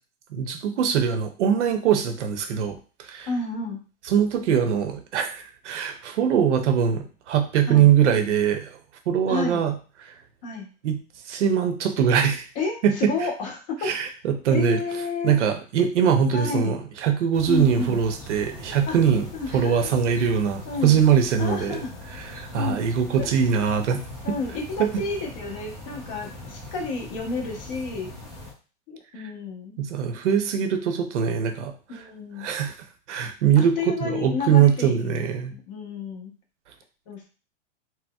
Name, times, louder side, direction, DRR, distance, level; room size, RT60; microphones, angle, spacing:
voice 1, 0.3-2.8 3.1-3.3 4.1-8.7 9.1-9.8 10.0-10.1 10.8-11.0 11.3-12.5 12.8-13.1 13.8-14.8 15.2-19.3 19.5-21.8 22.2-24.0 24.8-24.9 29.8-31.7 32.4-32.7 33.1-35.5, right 8 dB, 75° right, 6 dB, 0.7 m, -22 dB
voice 2, 3.3-3.8 7.7-7.9 9.3-9.6 10.4-10.7 12.6-13.9 14.5-15.4 16.3-16.8 17.5-18.0 18.9-19.0 19.3-19.8 20.7-21.0 21.4-21.9 22.5-22.9 23.2-23.3 24.2-28.1 28.9-29.8 31.9-32.5 33.6-35.0 35.5-36.3 37.1-37.2, left 4 dB, 40° left, 0 dB, 0.9 m, -31 dB
sound 1, 17.3-28.5, left 2 dB, 10° left, 0.8 m, -41 dB
4.2 x 2.0 x 2.2 m, 0.36 s
hypercardioid pair, 150°, 36 cm